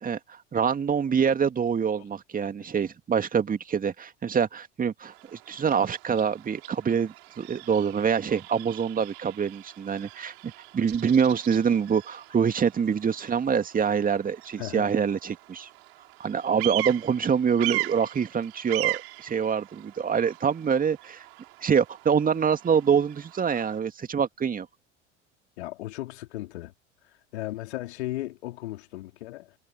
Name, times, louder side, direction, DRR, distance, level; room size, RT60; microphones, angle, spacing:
voice 1, 0.0-15.7 16.2-21.2 21.6-24.7, right 7 dB, 25° right, 2.4 m, -25 dB
Bird vocalization bird call bird song, 5.0-23.8, right 22 dB, 55° right, 6.0 m, -39 dB
voice 2, 14.6-14.9 15.2-15.3 25.6-26.7 27.3-29.5, left 16 dB, 60° left, 4.1 m, -36 dB
figure-of-eight pair, 75°, 37 cm